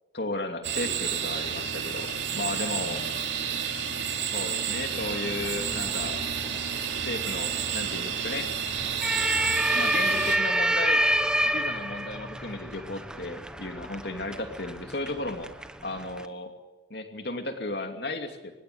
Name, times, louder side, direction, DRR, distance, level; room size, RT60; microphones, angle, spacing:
voice 1, 0.1-2.1 2.3-3.0 4.3-6.2 7.0-8.6 9.7-11.0 11.5-15.5 15.8-16.5 16.9-18.5, left 2 dB, 60° left, 5 dB, 2.7 m, -34 dB
sound 1, 0.6-10.4, right 7 dB, 80° right, 3.2 m, -30 dB
sound 2, 5.0-16.3, right 1 dB, 5° right, 1.2 m, -29 dB
25.0 x 21.0 x 8.2 m, 1.1 s
head